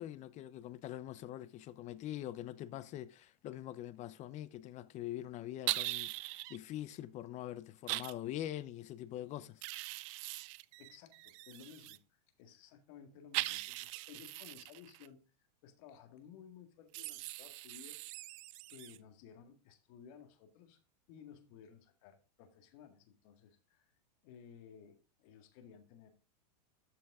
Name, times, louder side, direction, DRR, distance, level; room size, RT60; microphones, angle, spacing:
voice 1, 0.0-9.6, left 13 dB, 35° left, 0.7 m, -44 dB
sound 1, 5.7-6.6 7.9-8.1 9.6-12.0 13.3-15.1 16.9-19.0, right 20 dB, 50° right, 0.5 m, -41 dB
voice 2, 10.8-15.2 15.6-18.0 18.7-20.8 21.1-23.9 24.2-26.1, left 7 dB, 55° left, 2.0 m, -57 dB
12.5 x 5.8 x 3.7 m
hypercardioid pair, 125°, 21 cm